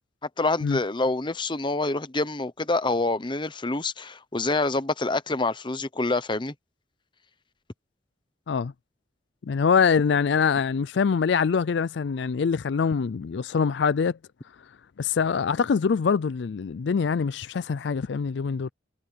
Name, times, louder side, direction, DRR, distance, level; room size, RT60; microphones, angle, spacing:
voice 1, 0.4-6.5, left 2 dB, 25° left, 0.9 m, -26 dB
voice 2, 9.4-14.2 15.0-18.7, left 6 dB, 65° left, 0.4 m, -24 dB
head